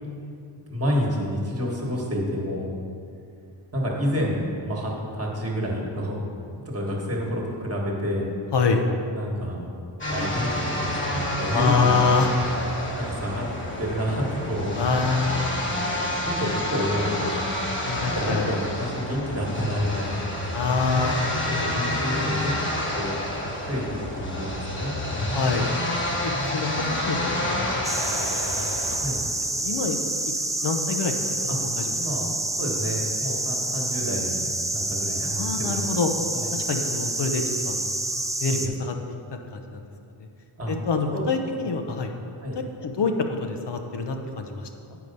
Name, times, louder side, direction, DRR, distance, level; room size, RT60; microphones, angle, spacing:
voice 1, 0.7-2.7 3.7-6.2 6.6-8.3 9.1-9.6 10.1-12.2 12.9-13.5 13.8-14.7 15.5-17.4 18.0-20.3 21.7-22.5 22.9-23.2 23.6-25.4 29.0-29.2 31.5-31.6 31.9-32.2 32.6-35.9 36.3-36.5 38.5-38.6 40.6-40.7 41.1-41.3 41.6-41.7 42.4-42.6, equal, 30° right, -2 dB, 1.5 m, -29 dB
voice 2, 8.5-8.9 11.5-12.3 14.7-15.6 17.9-18.6 20.5-21.9 25.3-25.7 26.2-28.8 29.6-30.1 30.6-31.1 31.4-31.9 35.4-36.1 36.5-37.9 38.4-39.2 39.5-39.8 40.2-40.3 40.7-42.1 42.8-45.0, left 4 dB, 55° left, 5 dB, 0.8 m, -26 dB
sound 1, 10.0-29.0, left 1 dB, 25° left, 1.1 m, -29 dB
sound 2, 27.8-38.7, right 2 dB, 5° right, 0.4 m, -28 dB
8.3 x 4.8 x 5.3 m, 2.5 s
wide cardioid pair, 100°, 49 cm